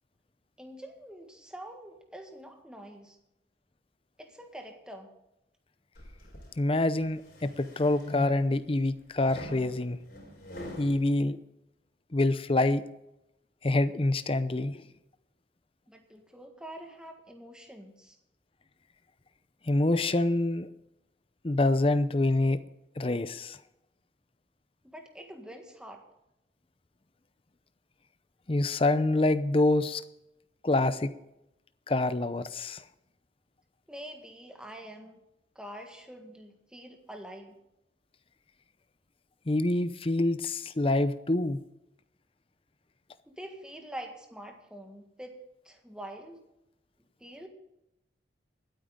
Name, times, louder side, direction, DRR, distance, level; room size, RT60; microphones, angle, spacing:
voice 1, 0.6-3.2 4.2-5.1 15.9-18.2 24.8-26.0 33.9-35.1 35.5-37.5 43.3-45.4 45.6-46.4 47.2-47.5, right 1 dB, 5° right, 3 dB, 1.7 m, -45 dB
sound 1, 5.9-6.5 7.0-8.6 9.2-11.0, left 1 dB, 50° left, 4.6 m, -43 dB
voice 2, 6.6-10.0 10.8-11.4 12.1-12.8 13.6-14.8 19.7-20.7 21.4-22.6 23.0-23.6 28.5-30.0 30.6-31.1 31.9-32.8 39.5-41.6, left 2 dB, 30° left, 13 dB, 0.6 m, -26 dB
21.0 x 9.1 x 3.8 m, 0.90 s
head